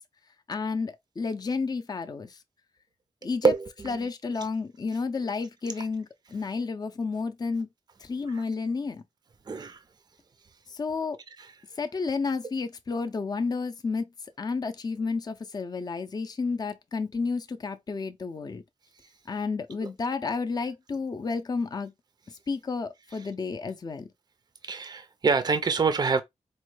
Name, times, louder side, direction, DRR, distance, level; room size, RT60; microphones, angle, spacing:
voice 1, 0.5-2.3 3.2-3.5 3.9-6.1 6.3-7.7 8.1-9.0 10.8-11.2 11.8-14.1 14.4-18.6 19.3-21.9 22.5-24.1, left 4 dB, 30° left, 0.4 m, -31 dB
voice 2, 3.4-4.1 4.4-4.5 5.8-5.9 8.3-8.4 9.5-9.8 11.4-11.5 19.8-19.9 23.1-23.3 24.6-26.2, right 4 dB, 35° right, 0.4 m, -26 dB
4.1 x 2.2 x 3.1 m
wide cardioid pair, 115°, 12 cm